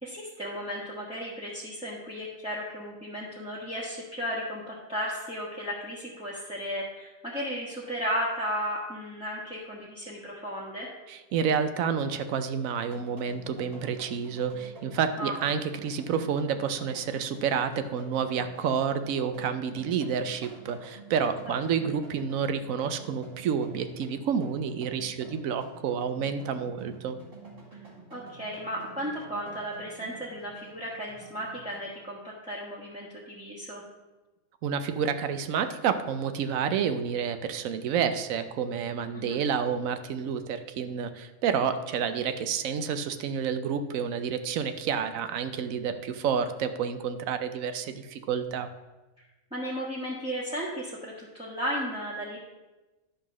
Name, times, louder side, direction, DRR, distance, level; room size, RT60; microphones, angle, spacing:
voice 1, 0.0-10.9 15.2-15.4 21.4-21.5 21.8-21.9 28.1-33.8 39.1-39.4 49.5-52.4, equal, 5° right, -7 dB, 1.3 m, -35 dB
voice 2, 11.1-27.2 34.6-48.7, right 7 dB, 90° right, 9 dB, 1.1 m, -29 dB
sound 1, 12.9-31.8, right 2 dB, 70° right, 2.3 m, -49 dB
11.5 x 3.9 x 6.1 m, 1.1 s
omnidirectional pair, 1.4 m